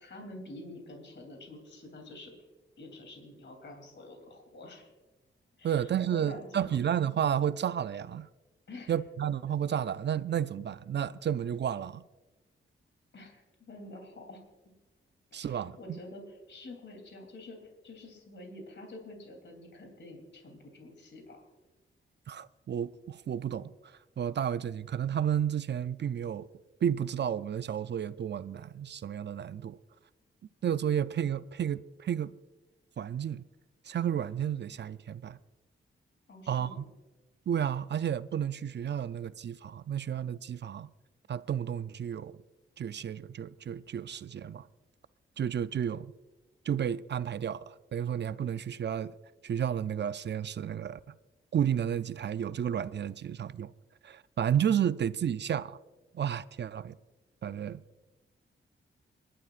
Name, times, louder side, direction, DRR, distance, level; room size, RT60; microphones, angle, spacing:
voice 1, 0.0-2.5 2.8-4.9 5.6-6.8 8.7-8.9 13.1-14.4 15.3-21.4 36.3-36.8, left 2 dB, 60° left, 3.2 m, -48 dB
voice 2, 5.6-8.3 8.9-12.0 15.3-16.0 22.3-23.7 24.2-26.5 26.8-29.8 30.6-32.4 33.0-33.4 33.9-35.4 36.5-36.8 37.5-40.9 41.3-42.4 42.8-44.7 45.4-46.1 46.6-49.1 49.4-51.0 51.5-53.7 54.0-55.8 56.1-56.9 57.4-57.8, right 9 dB, 55° right, 0.5 m, -32 dB
28.5 x 11.5 x 2.5 m
cardioid pair, 70°, 21 cm